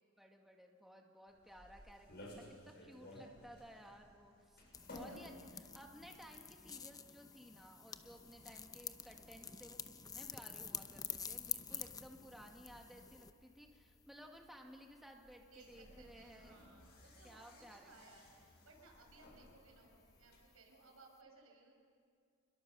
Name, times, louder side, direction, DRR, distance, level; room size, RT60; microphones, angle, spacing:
voice 1, 0.2-4.6 4.9-9.8 10.0-16.7 17.2-18.1, equal, ahead, 1 dB, 1.8 m, -57 dB
sound 1, 1.3-20.4, left 1 dB, 55° left, 6.6 m, -59 dB
sound 2, 4.7-13.3, left 6 dB, 15° left, 0.7 m, -48 dB
voice 2, 4.9-5.3 8.0-8.5 15.5-21.7, right 3 dB, 90° right, 1 dB, 5.6 m, -63 dB
27.5 x 21.5 x 6.7 m, 2.2 s
head